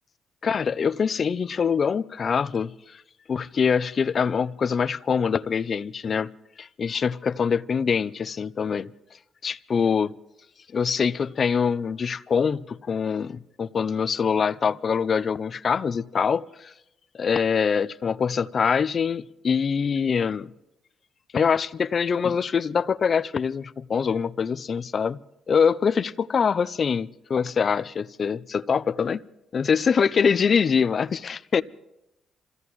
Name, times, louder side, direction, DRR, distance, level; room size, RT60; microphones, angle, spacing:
voice 1, 0.4-3.0 3.3-6.3 6.6-8.9 9.4-10.1 10.7-16.7 17.1-20.5 21.3-25.2 25.5-29.2 29.5-31.6, left 6 dB, 45° left, 0.5 m, -24 dB
27.5 x 16.0 x 3.1 m
cardioid pair, 90°, 0 cm